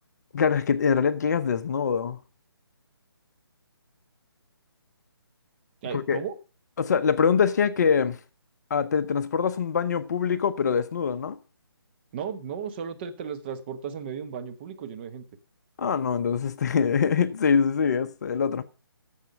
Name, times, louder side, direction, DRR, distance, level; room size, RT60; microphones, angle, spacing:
voice 1, 0.3-2.2 5.9-6.2 6.8-8.2 8.7-11.4 15.8-18.6, left 6 dB, 45° left, 0.8 m, -24 dB
voice 2, 5.8-6.4 12.1-15.3, right 7 dB, 25° right, 0.9 m, -35 dB
8.5 x 7.2 x 6.9 m
figure-of-eight pair, 145°, 13 cm